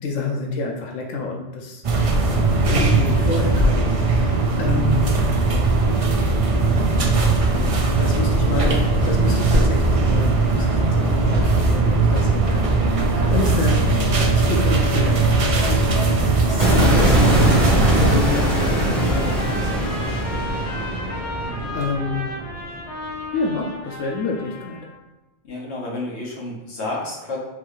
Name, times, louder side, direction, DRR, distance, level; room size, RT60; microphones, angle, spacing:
voice 1, 0.0-1.8 2.6-5.1 8.0-20.5 21.7-22.3 23.3-24.9, left 3 dB, 85° left, 0 dB, 0.9 m, -28 dB
sound 1, 1.8-18.2, right 3 dB, 50° right, 0.4 m, -19 dB
sound 2, 16.6-22.8, right 1 dB, 30° right, 1.2 m, -21 dB
Trumpet, 17.5-24.9, equal, 35° left, 0.9 m, -34 dB
voice 2, 25.4-27.4, left 2 dB, 65° left, -4 dB, 1.3 m, -31 dB
4.6 x 3.2 x 3.1 m, 1.1 s
omnidirectional pair, 1.2 m